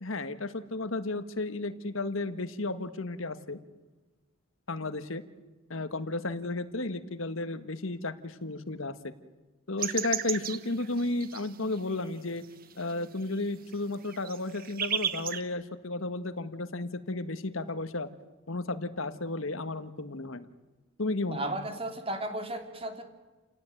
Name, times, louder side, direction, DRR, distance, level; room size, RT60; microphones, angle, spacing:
voice 1, 0.0-3.6 4.7-5.2 5.7-9.1 9.7-12.4 12.8-18.1 18.5-20.5 21.0-21.6, left 2 dB, 70° left, 11 dB, 1.6 m, -33 dB
sound 1, 9.8-12.0 12.4-15.4, right 9 dB, 45° right, 1.3 m, -34 dB
voice 2, 21.3-23.0, right 1 dB, 25° right, 6 dB, 2.9 m, -34 dB
29.5 x 17.5 x 9.2 m, 1.2 s
head